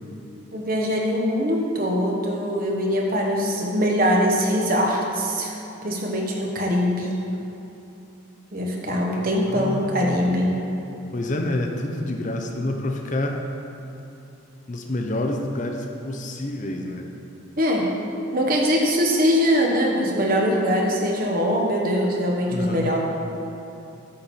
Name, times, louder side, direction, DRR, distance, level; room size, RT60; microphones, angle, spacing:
voice 1, 0.5-5.6 5.8-7.2 8.5-10.6 17.6-17.9 18.3-23.0, equal, 40° right, 0 dB, 1.1 m, -22 dB
voice 2, 9.4-10.2 11.1-13.4 14.7-17.1 22.5-22.9, left 1 dB, 35° left, 3 dB, 0.6 m, -28 dB
9.0 x 4.3 x 7.0 m, 2.9 s
head